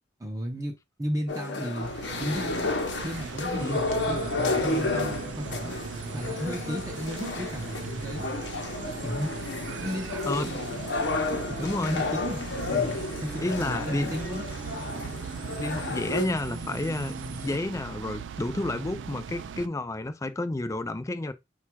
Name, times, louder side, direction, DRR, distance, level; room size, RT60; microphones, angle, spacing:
voice 1, 0.2-1.9 2.2-2.7 3.0-5.7 6.1-8.3 9.0-9.3 9.8-10.8 11.5-12.4 12.7-14.5, equal, 20° right, 0.7 m, -34 dB
sound 1, 1.3-16.3, left 3 dB, 65° left, 0.8 m, -32 dB
sound 2, 1.8-19.7, right 6 dB, 85° right, 0.4 m, -39 dB
sound 3, 3.6-17.6, right 2 dB, 45° right, 0.9 m, -41 dB
voice 2, 11.6-12.0 13.4-14.2 15.6-21.3, left 2 dB, 15° left, 0.4 m, -31 dB
4.4 x 2.3 x 4.5 m
head